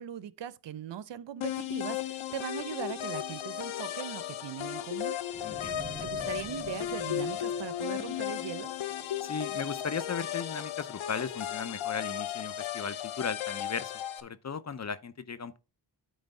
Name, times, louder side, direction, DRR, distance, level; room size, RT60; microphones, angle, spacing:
voice 1, 0.0-5.1 6.0-8.7, right 10 dB, 65° right, 0.7 m, -40 dB
sound 1, 1.4-14.2, left 11 dB, 85° left, 0.8 m, -35 dB
sound 2, 5.3-8.6, equal, 5° right, 2.5 m, -47 dB
voice 2, 5.4-5.8 9.2-13.9 14.2-15.6, left 6 dB, 35° left, 0.7 m, -36 dB
9.0 x 3.3 x 5.3 m
cardioid pair, 75°, 47 cm